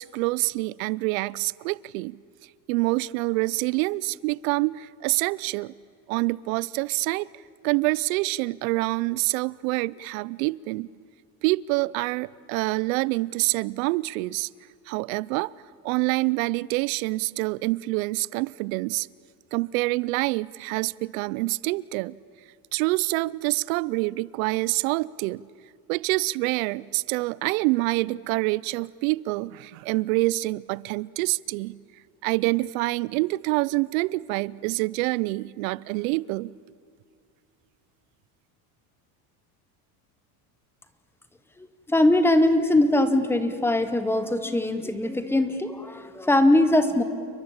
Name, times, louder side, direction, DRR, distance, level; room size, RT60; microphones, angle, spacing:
voice 1, 0.0-2.2 2.7-5.7 6.1-7.3 7.6-10.9 11.4-14.5 14.9-15.5 15.8-19.1 19.5-22.2 22.7-25.4 25.9-31.8 32.2-36.5, right 22 dB, 75° right, 0.6 m, -26 dB
voice 2, 41.6-47.0, left 1 dB, 5° left, 0.9 m, -21 dB
29.5 x 22.0 x 8.8 m
cardioid pair, 175°, 42 cm